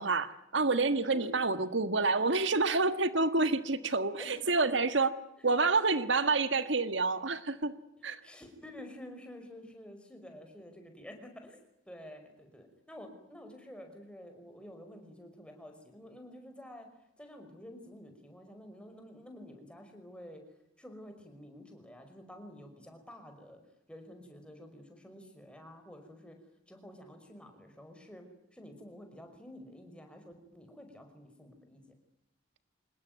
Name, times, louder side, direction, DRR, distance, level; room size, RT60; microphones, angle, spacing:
voice 1, 0.0-5.1 5.4-7.7 8.0-8.2, right 3 dB, 70° right, 11 dB, 1.5 m, -28 dB
voice 2, 1.1-1.5 4.2-4.6 8.0-16.9 17.2-20.4 20.8-23.6 23.9-26.4 26.7-28.3 28.5-31.8, equal, 5° left, 5 dB, 5.4 m, -50 dB
26.5 x 20.5 x 9.5 m, 0.84 s
head